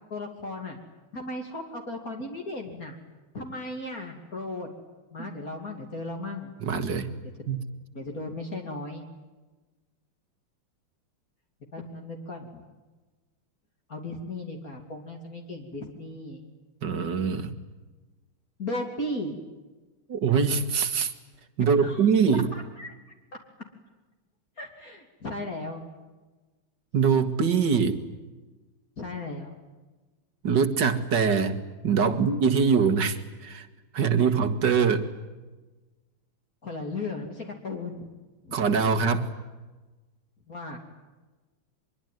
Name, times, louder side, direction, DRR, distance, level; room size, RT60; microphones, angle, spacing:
voice 1, 0.1-0.8 1.1-3.0 3.3-4.7 5.1-6.5 7.9-9.0 11.7-12.6 13.9-16.4 18.6-19.4 21.8-22.9 23.3-23.4 24.6-25.8 29.0-29.6 36.6-38.1 38.4-38.8 40.5-40.8, left 2 dB, 40° left, 2 dB, 3.3 m, -36 dB
voice 2, 6.6-7.1 7.5-7.6 16.8-17.5 20.1-21.1 21.6-22.5 26.9-28.0 30.4-33.7 33.9-35.1 38.5-39.3, right 6 dB, 55° right, 10 dB, 2.4 m, -23 dB
25.0 x 23.0 x 9.4 m, 1.2 s
omnidirectional pair, 2.3 m